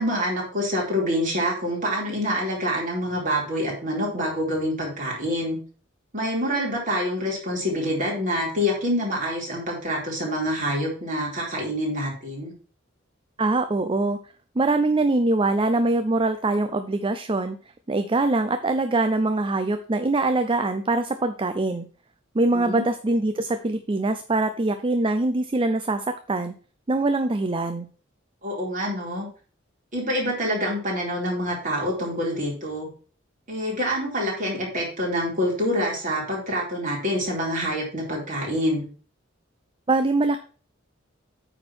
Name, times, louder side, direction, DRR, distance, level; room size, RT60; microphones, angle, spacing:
voice 1, 0.0-5.6 6.1-12.5 22.5-22.8 28.4-29.3 29.9-32.9 33.5-38.9, equal, 40° right, -3 dB, 4.2 m, -26 dB
voice 2, 13.4-14.2 14.6-17.6 17.9-21.8 22.3-26.5 26.9-27.9 39.9-40.4, right 2 dB, 25° right, 9 dB, 0.5 m, -23 dB
9.0 x 4.4 x 6.0 m, 0.40 s
head